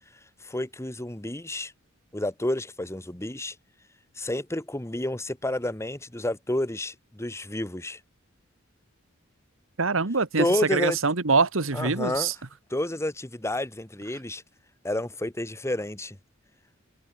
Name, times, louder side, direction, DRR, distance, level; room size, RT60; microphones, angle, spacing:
voice 1, 0.4-1.7 2.1-3.5 4.2-8.0 10.4-11.0 11.7-12.3 12.7-14.4 14.8-16.2, left 1 dB, 15° left, 1.6 m, -30 dB
voice 2, 9.8-10.5 10.7-12.3, right 4 dB, 70° right, 1.5 m, -24 dB
head